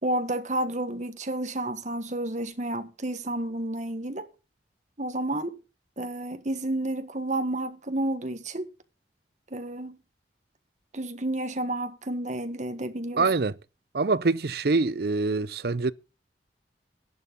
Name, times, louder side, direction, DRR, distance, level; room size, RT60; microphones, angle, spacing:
voice 1, 0.0-4.3 5.0-5.6 6.0-8.6 9.5-10.0 10.9-13.3, right 1 dB, 40° right, 1.5 m, -30 dB
voice 2, 13.2-13.5 13.9-15.9, right 3 dB, 55° right, 0.6 m, -24 dB
12.5 x 11.0 x 5.3 m
head